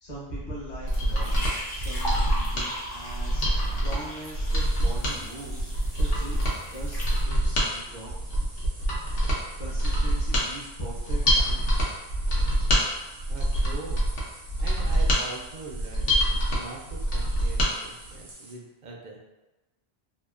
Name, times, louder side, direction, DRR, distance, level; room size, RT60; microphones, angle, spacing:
voice 1, 0.0-8.1 9.6-11.7, right 1 dB, 50° left, -6 dB, 0.9 m, -41 dB
Mechanisms, 0.6-17.7 18.1-18.2, equal, 70° left, 0.9 m, -25 dB
sound 1, 0.9-7.2, equal, 25° left, 0.6 m, -38 dB
sound 2, 4.6-18.5, right 2 dB, 90° right, 1.0 m, -49 dB
voice 2, 13.3-14.0 14.6-16.2 16.5-19.2, right 3 dB, 55° right, -1 dB, 0.6 m, -41 dB
2.8 x 2.3 x 2.3 m, 1.1 s
omnidirectional pair, 1.0 m